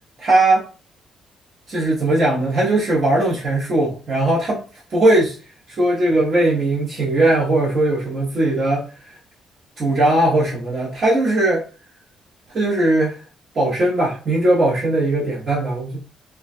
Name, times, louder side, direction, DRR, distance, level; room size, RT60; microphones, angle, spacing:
voice 1, 0.2-0.7 1.7-4.6 4.9-5.4 5.7-8.9 9.8-11.7 12.5-13.2 13.5-16.0, right 2 dB, 40° right, -6 dB, 0.8 m, -19 dB
2.2 x 2.2 x 2.5 m, 0.35 s
cardioid pair, 140°, 0 cm